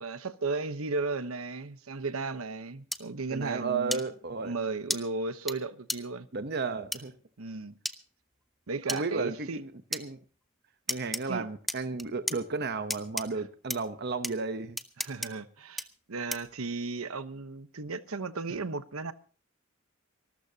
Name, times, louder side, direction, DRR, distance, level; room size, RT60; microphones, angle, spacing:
voice 1, 0.0-4.0 4.4-6.3 7.4-7.8 8.7-9.6 11.3-11.4 15.0-19.1, right 3 dB, 85° right, 1.0 m, -35 dB
sound 1, 2.9-3.0 3.9-4.0 4.9-5.0 5.5-5.6 5.9-6.0 6.9-7.0 7.9-8.0 8.9-9.0 9.9-10.0 10.9-11.2 11.7-12.4 12.9-13.3 13.7-13.8 14.2-14.3 14.8-15.3 15.8-15.9 16.3-16.5, equal, ahead, 0.7 m, -32 dB
voice 2, 3.3-4.6 6.3-7.2 8.9-10.2 10.9-14.8, right 4 dB, 50° right, 0.9 m, -33 dB
25.0 x 13.5 x 2.8 m
head